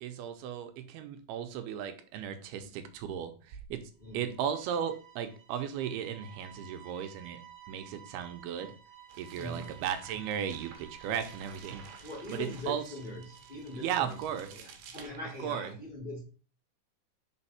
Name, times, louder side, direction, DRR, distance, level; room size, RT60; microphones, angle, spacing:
voice 1, 0.0-3.8 4.1-7.4 7.7-8.7 9.2-11.9 12.3-12.8 13.8-14.5 15.4-15.7, right 8 dB, 85° right, 8 dB, 2.7 m, -36 dB
voice 2, 4.0-4.3 9.3-9.7 12.0-16.2, left 1 dB, 70° left, -5 dB, 0.4 m, -42 dB
sound 1, 4.0-14.8, right 9 dB, 10° right, 1.7 m, -54 dB
sound 2, 9.1-15.6, right 6 dB, 70° right, 2.6 m, -53 dB
5.4 x 4.9 x 5.6 m, 0.38 s
omnidirectional pair, 4.5 m